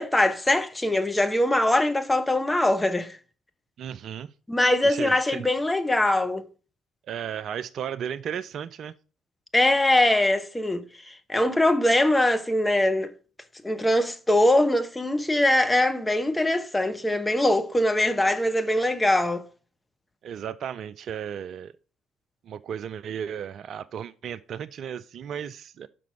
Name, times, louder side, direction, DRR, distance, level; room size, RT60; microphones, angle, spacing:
voice 1, 0.0-3.2 4.5-6.4 9.5-13.1 13.6-19.4, left 1 dB, 15° left, 1.0 m, -22 dB
voice 2, 3.8-4.3 4.8-5.5 7.1-8.9 20.2-21.7 22.4-25.9, right 8 dB, 55° right, 0.4 m, -34 dB
6.0 x 5.9 x 6.7 m
figure-of-eight pair, 50°, 0 cm